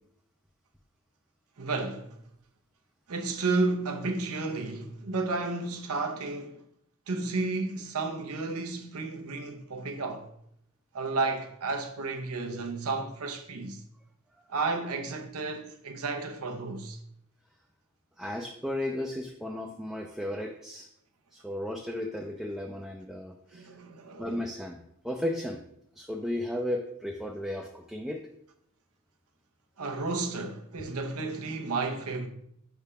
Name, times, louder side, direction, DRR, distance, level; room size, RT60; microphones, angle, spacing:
voice 1, 1.6-2.2 3.1-6.6 7.1-10.3 10.9-13.8 14.5-17.0 23.5-24.4 29.8-32.3, right 3 dB, 90° right, 0.8 m, -32 dB
voice 2, 18.2-20.9 21.3-23.7 24.2-24.8 25.0-25.6 26.0-28.2, left 1 dB, ahead, 0.4 m, -34 dB
4.8 x 3.5 x 5.5 m
head